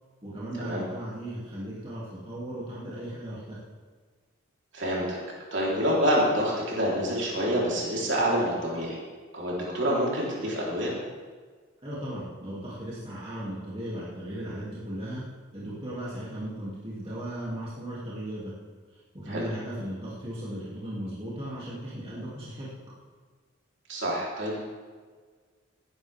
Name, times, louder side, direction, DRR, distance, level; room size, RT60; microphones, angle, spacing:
voice 1, 0.2-3.6 11.8-15.2 15.5-18.5 19.2-22.7, right 1 dB, 25° right, -8 dB, 2.8 m, -36 dB
voice 2, 4.7-5.2 5.5-9.0 9.3-10.9 19.3-19.4 23.9-24.6, equal, 60° right, -5 dB, 4.0 m, -27 dB
18.0 x 10.0 x 3.7 m, 1.5 s
head